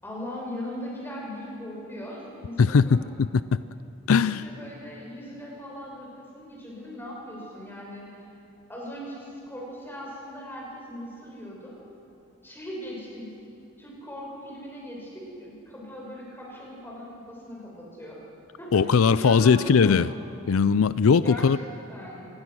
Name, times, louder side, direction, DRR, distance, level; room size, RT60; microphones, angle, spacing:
voice 1, 0.0-3.0 4.2-8.3 8.7-11.8 12.4-13.3 13.8-18.3 18.6-20.1 21.1-22.3, equal, 10° left, -3 dB, 6.1 m, -39 dB
voice 2, 2.6-3.6 4.1-4.4 18.7-20.1 20.5-21.6, left 5 dB, 85° left, 16 dB, 0.5 m, -20 dB
26.5 x 20.5 x 6.3 m, 2.8 s
head